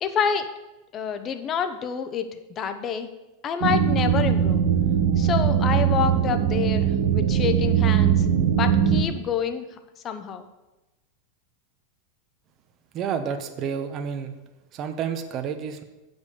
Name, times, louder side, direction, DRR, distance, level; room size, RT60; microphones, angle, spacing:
voice 1, 0.0-0.5 0.9-3.1 3.4-4.6 5.2-8.3 8.5-10.5, left 7 dB, 30° left, 9 dB, 0.8 m, -28 dB
sound 1, 3.6-9.0, right 8 dB, 65° right, 1.1 m, -21 dB
voice 2, 12.9-14.3 14.7-15.8, right 7 dB, 35° right, 6 dB, 0.8 m, -30 dB
8.1 x 5.3 x 6.7 m, 1.0 s
supercardioid pair, 140°, 0 cm